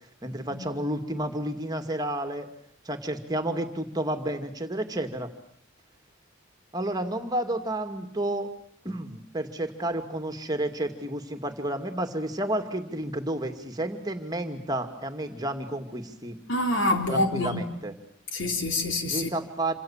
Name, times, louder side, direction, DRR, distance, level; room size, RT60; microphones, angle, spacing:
voice 1, 0.2-2.5 2.8-5.3 6.7-8.5 8.8-16.4 17.1-17.9 19.1-19.7, right 1 dB, 20° right, 2.5 m, -31 dB
voice 2, 16.5-17.6 18.3-19.3, left 2 dB, 65° left, 4.0 m, -26 dB
27.5 x 26.0 x 7.5 m
head